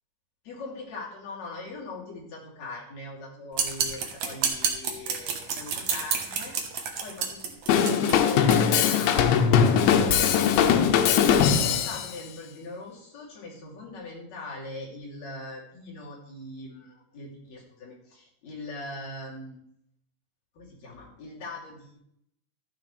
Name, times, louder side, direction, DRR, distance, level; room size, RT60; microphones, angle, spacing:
voice 1, 0.4-6.5 7.0-7.9 8.2-10.8 11.5-19.6 20.5-22.0, left 2 dB, 45° left, -5 dB, 3.8 m, -41 dB
sound 1, 3.5-8.6, right 6 dB, 70° right, 1.7 m, -29 dB
Drum kit / Drum, 7.7-12.1, left 8 dB, 85° left, 3.1 m, -21 dB
13.0 x 9.2 x 3.3 m, 0.74 s
omnidirectional pair, 5.1 m